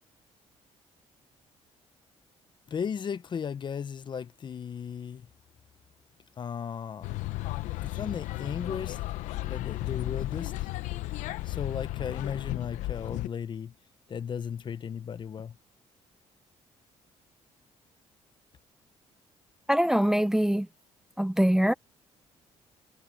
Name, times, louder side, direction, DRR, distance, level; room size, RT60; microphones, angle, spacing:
voice 1, 2.7-5.3 6.4-7.1 7.8-9.0 9.4-10.7 11.4-13.7 14.1-15.6, left 7 dB, 40° left, 0.8 m, -36 dB
sound 1, 7.0-13.3, left 17 dB, 90° left, 0.8 m, -34 dB
voice 2, 19.7-20.7 21.2-21.7, equal, 5° right, 0.6 m, -23 dB
cardioid pair, 105°, 12 cm